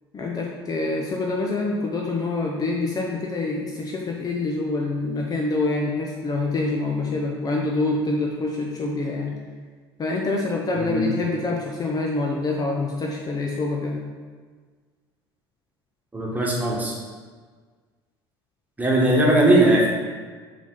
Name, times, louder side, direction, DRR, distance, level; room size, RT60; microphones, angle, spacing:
voice 1, 0.1-9.3 10.0-14.0, left 3 dB, 30° left, -1 dB, 0.8 m, -26 dB
voice 2, 10.8-11.1 16.1-16.9 18.8-19.9, right 1 dB, 10° right, -3 dB, 1.7 m, -19 dB
7.2 x 4.3 x 3.7 m, 1.5 s
figure-of-eight pair, 65°, 13 cm